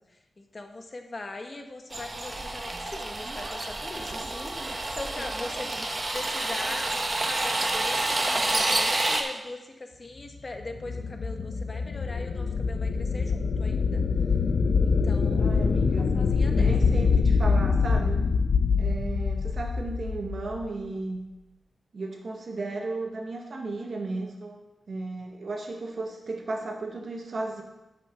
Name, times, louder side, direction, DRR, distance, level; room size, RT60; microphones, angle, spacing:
voice 1, 0.0-5.7 6.1-14.0 14.8-15.6 16.0-16.7, left 2 dB, 40° left, 5 dB, 1.2 m, -41 dB
sound 1, 1.9-9.2, right 2 dB, 35° right, 1.2 m, -29 dB
sound 2, 10.5-20.7, left 5 dB, 75° left, 0.7 m, -24 dB
voice 2, 15.4-16.1 16.5-18.2 18.8-21.2 21.9-24.6 24.9-27.6, right 3 dB, 60° right, 1 dB, 1.8 m, -34 dB
8.7 x 6.0 x 6.2 m, 0.99 s
wide cardioid pair, 85°, 0 cm